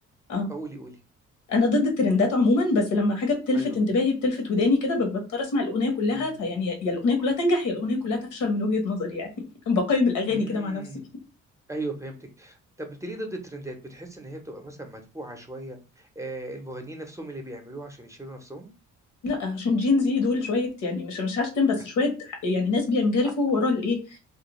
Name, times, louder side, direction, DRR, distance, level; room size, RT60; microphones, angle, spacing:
voice 1, 0.5-1.0 3.5-3.8 6.1-6.5 10.3-11.1 11.7-18.7, right 2 dB, 10° right, 4 dB, 0.6 m, -38 dB
voice 2, 1.5-9.3 9.7-10.8 19.2-24.2, left 3 dB, 80° left, 3 dB, 1.1 m, -24 dB
2.5 x 2.2 x 2.9 m, 0.31 s
cardioid pair, 90°, 30 cm